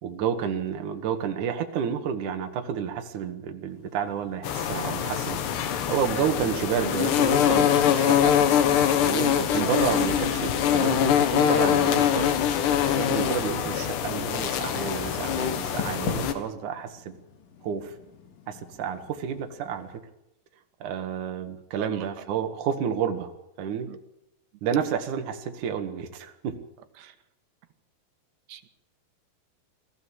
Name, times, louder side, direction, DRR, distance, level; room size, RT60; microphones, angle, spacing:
voice 1, 0.0-8.3 9.0-12.3 12.9-17.1 17.6-17.9 18.5-19.9 20.8-23.3 23.6-23.9 24.6-26.6, right 7 dB, 55° right, 6 dB, 2.9 m, -30 dB
sound 1, 3.7-20.0, left 6 dB, 55° left, 3.3 m, -45 dB
sound 2, 4.4-16.3, left 9 dB, 80° left, 3.7 m, -23 dB
voice 2, 13.1-13.3 20.8-20.9 21.8-22.1 23.9-24.0 27.0-27.2 28.5-28.7, right 9 dB, 75° right, 8 dB, 3.5 m, -43 dB
21.5 x 15.0 x 8.9 m, 0.86 s
omnidirectional pair, 4.9 m